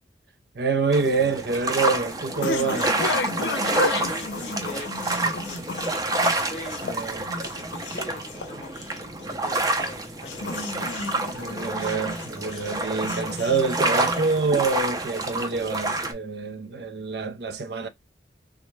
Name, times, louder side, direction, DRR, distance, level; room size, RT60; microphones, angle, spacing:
voice 1, 0.5-3.0 6.8-7.3 11.3-17.9, right 4 dB, 65° right, 0.6 m, -26 dB
sound 1, 0.9-16.1, right 2 dB, 20° right, 0.5 m, -28 dB
sound 2, 1.1-14.6, left 3 dB, 80° left, 0.6 m, -33 dB
voice 2, 3.9-8.9 9.2-10.5, left 2 dB, 40° left, 0.7 m, -43 dB
3.4 x 2.1 x 3.1 m
head